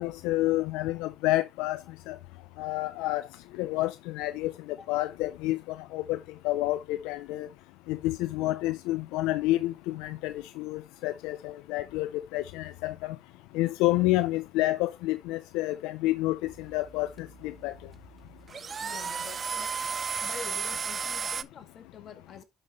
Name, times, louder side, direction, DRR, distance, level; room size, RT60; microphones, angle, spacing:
voice 1, 0.0-1.8 2.1-2.2 2.6-3.3 3.6-6.2 6.4-7.5 7.9-13.2 13.5-17.7, left 17 dB, 90° left, 0.4 m, -29 dB
sound 1, 16.5-21.4, right 6 dB, 40° right, 0.5 m, -34 dB
voice 2, 18.8-19.7 20.2-22.4, left 6 dB, 55° left, 1.9 m, -46 dB
11.0 x 5.3 x 2.9 m
supercardioid pair, 75°, 0 cm